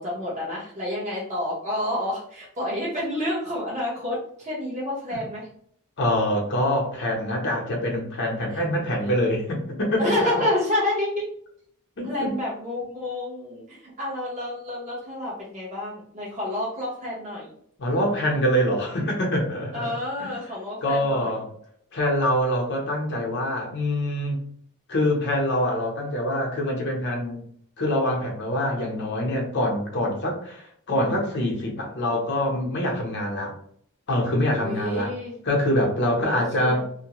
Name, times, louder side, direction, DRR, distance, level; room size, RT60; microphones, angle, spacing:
voice 1, 0.0-5.5 8.5-8.6 10.0-11.3 12.0-17.5 19.7-21.3 34.5-35.3 36.1-36.9, left 1 dB, 30° right, -6 dB, 1.0 m, -29 dB
voice 2, 6.0-10.1 12.0-12.4 17.8-19.9 20.2-20.3 20.8-21.5 21.9-24.4 24.9-27.4 27.8-33.5 34.1-35.1 35.4-36.8, left 1 dB, 55° left, 0 dB, 0.8 m, -25 dB
2.6 x 2.1 x 2.9 m, 0.65 s
head